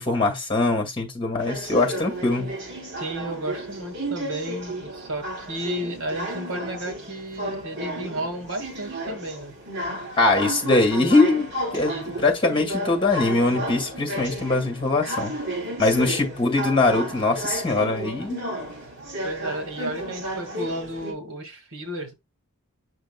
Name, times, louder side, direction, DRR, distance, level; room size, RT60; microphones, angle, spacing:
voice 1, 0.0-2.5 10.2-15.4 15.8-18.4, left 2 dB, 25° left, 2.1 m, -22 dB
sound 1, 1.4-21.1, right 1 dB, 50° right, 3.3 m, -33 dB
voice 2, 3.0-9.5 11.9-12.2 16.0-16.4 19.2-22.1, right 1 dB, 70° right, 2.0 m, -33 dB
6.8 x 6.4 x 2.3 m
head